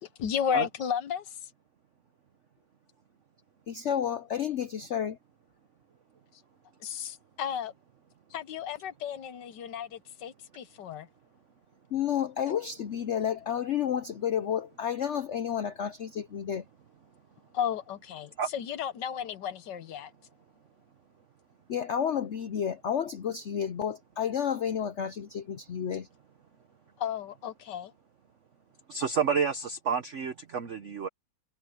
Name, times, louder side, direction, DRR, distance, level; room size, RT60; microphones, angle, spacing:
voice 1, 0.0-1.4 6.8-7.7 8.3-11.1 17.5-20.1 27.0-27.9, left 8 dB, 65° left, 1.5 m, -33 dB
voice 2, 3.7-5.2 11.9-16.6 21.7-26.1, left 9 dB, 85° left, 0.6 m, -31 dB
voice 3, 28.9-31.1, right 6 dB, 50° right, 1.0 m, -29 dB
omnidirectional pair, 2.1 m